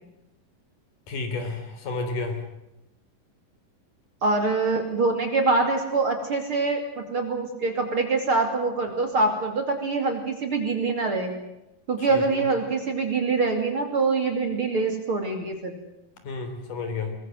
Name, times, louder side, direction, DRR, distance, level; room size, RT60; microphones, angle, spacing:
voice 1, 1.1-2.4 12.0-12.5 16.2-17.2, left 3 dB, 60° left, 6 dB, 4.8 m, -31 dB
voice 2, 4.2-11.3 11.9-15.7, right 3 dB, 40° right, 4 dB, 3.0 m, -24 dB
22.5 x 21.5 x 7.8 m, 0.92 s
omnidirectional pair, 4.2 m